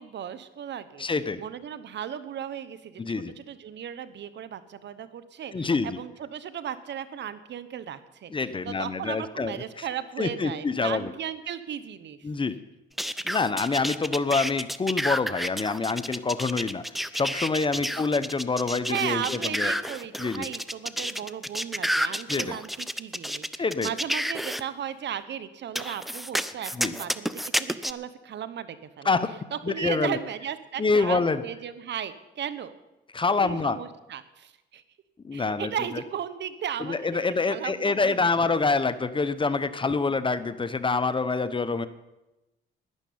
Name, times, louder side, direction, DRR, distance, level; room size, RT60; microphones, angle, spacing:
voice 1, 0.0-1.1 1.4-12.2 17.7-18.0 18.9-29.1 29.5-32.7 33.4-34.8 35.3-37.0 37.5-38.4, right 9 dB, 60° right, 13 dB, 1.1 m, -36 dB
voice 2, 1.0-1.4 3.0-3.3 5.5-6.0 8.3-9.9 10.2-11.1 12.2-12.6 13.3-16.8 17.1-19.7 20.2-20.5 22.3-22.6 23.6-23.9 26.7-26.9 29.0-29.3 29.6-30.2 30.8-31.4 33.1-33.8 35.2-35.7 36.8-41.9, left 4 dB, 25° left, 13 dB, 0.9 m, -26 dB
sound 1, 13.0-24.6 25.7-27.9, equal, ahead, 0.6 m, -30 dB
12.0 x 10.5 x 8.6 m, 1.0 s
cardioid pair, 90°, 20 cm